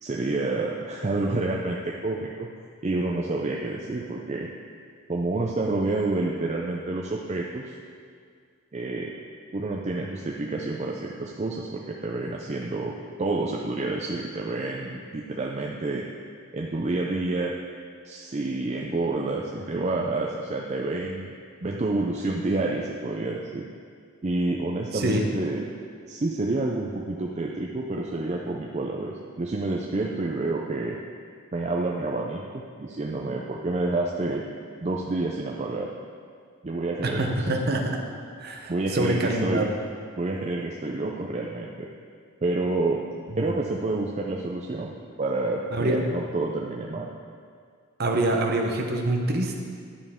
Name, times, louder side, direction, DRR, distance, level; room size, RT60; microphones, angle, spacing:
voice 1, 0.0-2.5 2.8-4.5 5.1-7.8 8.7-9.1 9.5-12.9 13.2-16.0 16.5-17.5 18.0-21.3 21.6-23.7 24.2-25.7 26.1-31.0 31.5-34.4 34.8-35.9 36.6-37.4 38.7-39.7 40.2-41.9 42.4-43.0 43.4-44.9 45.2-47.1, right 2 dB, 30° right, -1 dB, 0.4 m, -28 dB
voice 2, 24.9-25.3 37.0-38.0 38.4-39.7 43.3-43.5 45.7-46.0 48.0-49.6, right 1 dB, 45° right, 2 dB, 0.8 m, -25 dB
10.5 x 7.1 x 3.6 m, 2.1 s
head